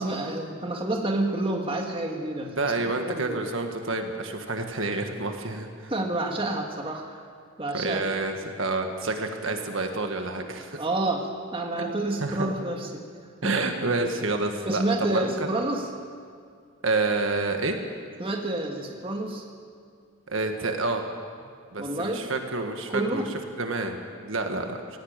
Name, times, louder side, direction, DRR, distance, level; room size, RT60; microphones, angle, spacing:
voice 1, 0.0-3.4 5.9-7.2 7.6-8.0 10.8-13.1 13.4-13.6 14.7-15.9 18.2-19.4 21.8-22.3 22.9-23.3, right 2 dB, 25° right, 1 dB, 1.8 m, -29 dB
voice 2, 2.6-5.9 7.7-10.8 11.8-11.9 12.2-12.5 13.4-15.3 16.8-17.8 20.3-21.0 21.7-23.2 23.6-24.0 24.2-24.8, right 3 dB, 60° right, 5 dB, 1.6 m, -28 dB
17.0 x 17.0 x 8.9 m, 2.2 s
head